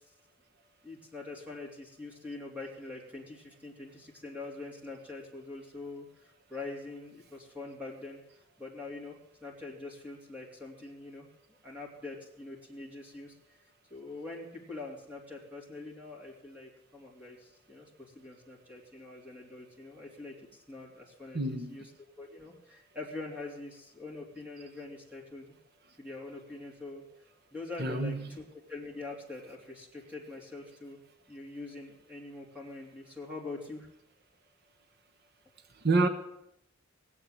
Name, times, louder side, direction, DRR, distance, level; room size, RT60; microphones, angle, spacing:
voice 1, 0.8-13.3 13.9-21.9 22.2-25.5 26.0-31.0 31.3-33.9, left 3 dB, 5° right, 3.1 m, -44 dB
voice 2, 21.3-21.7 27.8-28.2 35.8-36.1, right 2 dB, 55° right, 1.1 m, -27 dB
19.5 x 7.8 x 7.8 m
head